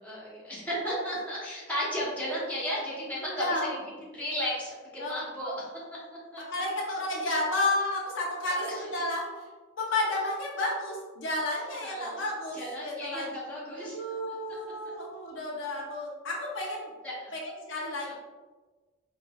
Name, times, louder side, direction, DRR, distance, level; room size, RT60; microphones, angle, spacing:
voice 1, 0.0-5.7 6.3-6.4 8.5-8.8 11.9-12.2 12.5-14.3 16.6-16.7 17.0-17.3 18.0-18.1, equal, 10° left, -8 dB, 1.3 m, -34 dB
voice 2, 3.4-3.7 5.0-5.1 6.5-9.3 9.8-13.3 13.8-16.9 17.3-17.4 17.7-18.1, left 2 dB, 80° left, -2 dB, 0.8 m, -31 dB
4.7 x 2.6 x 2.4 m, 1.3 s
head